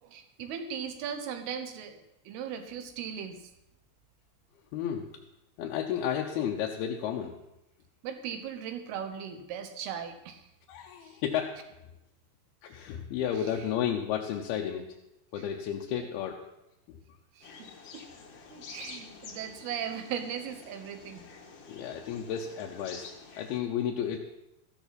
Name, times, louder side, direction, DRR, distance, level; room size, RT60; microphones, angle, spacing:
voice 1, 0.0-3.5 8.0-10.5 11.0-11.2 13.4-13.5 15.4-15.5 16.0-16.1 17.3-18.0 18.5-21.2, right 8 dB, 85° right, 7 dB, 3.1 m, -38 dB
voice 2, 4.7-5.1 5.6-7.4 10.7-11.6 12.6-14.9 15.3-16.4 16.9-17.0 21.7-23.1 23.4-24.2, left 9 dB, 80° left, 0 dB, 2.7 m, -32 dB
sound 1, 17.4-23.6, left 5 dB, 60° left, 1.8 m, -48 dB
14.0 x 12.0 x 4.1 m, 0.89 s
omnidirectional pair, 4.4 m